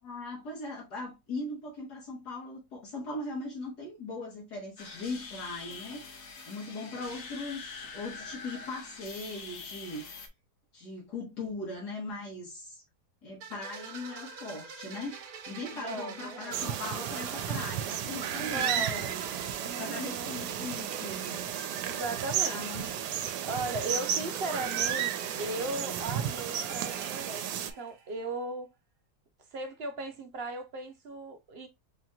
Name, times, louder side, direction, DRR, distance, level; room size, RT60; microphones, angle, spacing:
voice 1, 0.0-10.0 10.7-12.8 13.2-15.2 15.5-19.2 19.8-21.4 22.4-22.9, left 2 dB, 80° left, 2.0 m, -39 dB
sound 1, 4.8-10.3, left 4 dB, 55° left, 0.8 m, -44 dB
voice 2, 6.7-7.2 15.7-16.6 18.4-19.2 19.6-20.4 21.8-22.9 23.4-28.7 29.5-31.7, right 2 dB, 50° right, 0.7 m, -37 dB
sound 2, 13.4-28.2, right 6 dB, 65° right, 1.2 m, -45 dB
sound 3, 16.5-27.7, right 9 dB, 90° right, 1.2 m, -33 dB
5.2 x 2.9 x 2.3 m
omnidirectional pair, 1.7 m